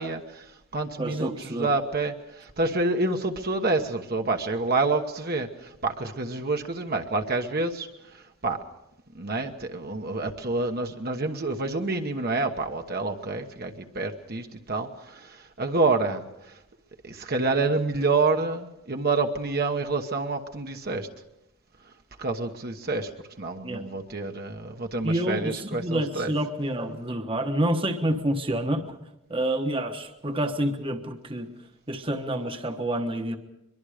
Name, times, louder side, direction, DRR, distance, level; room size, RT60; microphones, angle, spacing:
voice 1, 0.0-8.6 9.1-16.6 17.0-21.1 22.2-23.1 23.4-26.3, right 3 dB, 45° right, 4 dB, 1.2 m, -28 dB
voice 2, 1.0-1.7 23.6-23.8 25.0-29.0 29.3-31.5 31.9-33.4, right 1 dB, 25° right, 6 dB, 1.2 m, -28 dB
23.0 x 23.0 x 5.0 m, 0.88 s
head